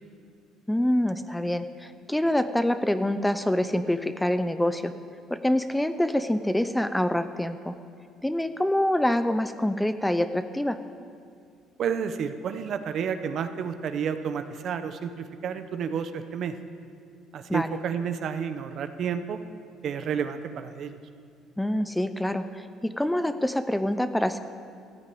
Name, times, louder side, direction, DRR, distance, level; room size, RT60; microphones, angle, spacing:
voice 1, 0.7-4.9 5.3-7.7 8.2-10.8 17.5-17.7 21.6-24.4, left 1 dB, 5° left, 10 dB, 0.5 m, -26 dB
voice 2, 11.8-16.6 17.3-19.4 19.8-21.0, right 7 dB, 50° right, 10 dB, 0.9 m, -30 dB
14.5 x 9.5 x 8.5 m, 2.3 s
cardioid pair, 120°, 0 cm